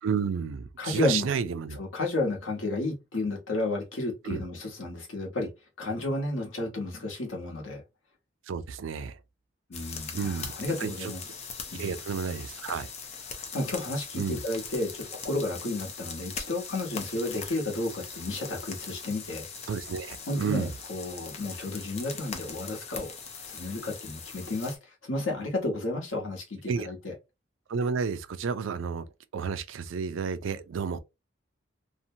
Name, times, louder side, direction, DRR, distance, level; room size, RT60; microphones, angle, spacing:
voice 1, 0.0-1.8 4.2-4.4 8.5-9.2 10.1-10.5 10.8-11.1 11.8-12.9 14.1-14.4 19.7-20.7 26.7-26.9 27.7-29.1 29.3-31.0, right 6 dB, 85° right, 0.4 m, -31 dB
voice 2, 0.8-1.3 1.8-5.5 5.8-7.8 9.7-11.2 11.7-12.0 13.3-19.4 20.3-23.1 23.5-27.1, left 2 dB, 90° left, 1.0 m, -32 dB
sound 1, 9.7-24.8, left 5 dB, 35° left, 0.4 m, -41 dB
2.7 x 2.1 x 2.7 m
head